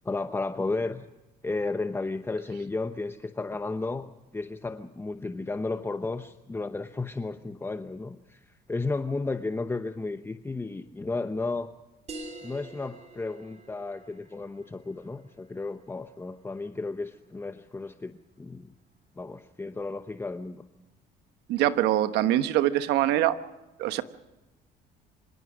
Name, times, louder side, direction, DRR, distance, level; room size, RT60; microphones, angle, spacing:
voice 1, 0.0-1.1 1.4-11.7 12.4-18.7 19.2-20.6, left 3 dB, 15° left, 9 dB, 0.9 m, -33 dB
sound 1, 12.1-17.2, right 2 dB, 40° right, 3.5 m, -47 dB
voice 2, 21.5-23.4 23.8-24.0, right 13 dB, 90° right, 11 dB, 1.2 m, -23 dB
25.5 x 17.5 x 6.3 m, 1.1 s
cardioid pair, 110°, 17 cm